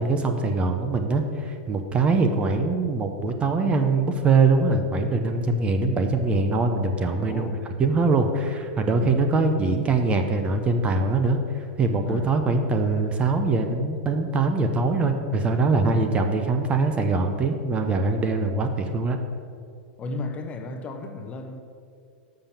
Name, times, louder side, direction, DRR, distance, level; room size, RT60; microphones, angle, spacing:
voice 1, 0.0-7.5 7.8-19.2, right 3 dB, 20° right, 0.7 m, -23 dB
voice 2, 7.3-7.6 8.0-8.1 8.9-9.2 12.0-12.3 15.8-16.1 20.0-21.6, left 3 dB, 25° left, 0.8 m, -35 dB
6.7 x 5.8 x 7.2 m
hypercardioid pair, 130°, 5 cm